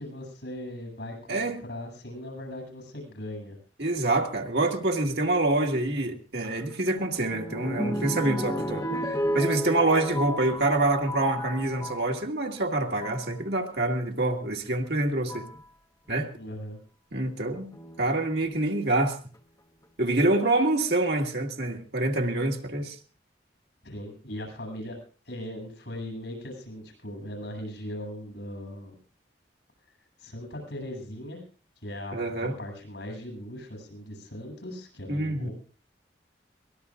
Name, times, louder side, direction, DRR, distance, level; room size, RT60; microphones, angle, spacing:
voice 1, 0.0-3.6 16.3-16.8 23.8-25.0 25.2-28.9 30.2-31.4 31.8-35.5, left 1 dB, 80° left, 8.0 m, -39 dB
voice 2, 3.8-8.9 9.3-15.4 16.1-16.3 17.1-17.7 18.0-19.2 20.0-23.0 32.1-32.5 35.1-35.5, right 2 dB, 65° right, 1.9 m, -26 dB
sound 1, 6.4-12.1 12.8-13.3 14.5-14.6 15.3-15.6 17.7-18.4 19.0-19.1 19.3-19.4, equal, 20° left, 1.0 m, -32 dB
23.0 x 19.5 x 2.5 m
head